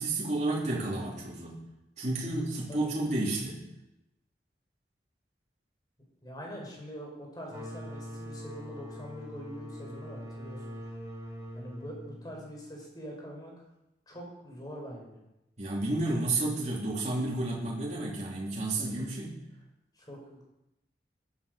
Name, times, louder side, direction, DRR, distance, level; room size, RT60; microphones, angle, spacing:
voice 1, 0.0-1.6 2.0-3.6 15.6-19.3, right 2 dB, 40° right, -5 dB, 3.5 m, -31 dB
voice 2, 6.2-10.8 11.5-13.5 14.1-15.2 18.8-19.1 19.9-20.5, equal, 20° left, -1 dB, 4.3 m, -44 dB
sound 1, 7.5-12.9, equal, 25° right, 7.0 m, -43 dB
14.5 x 11.5 x 5.2 m, 0.91 s
head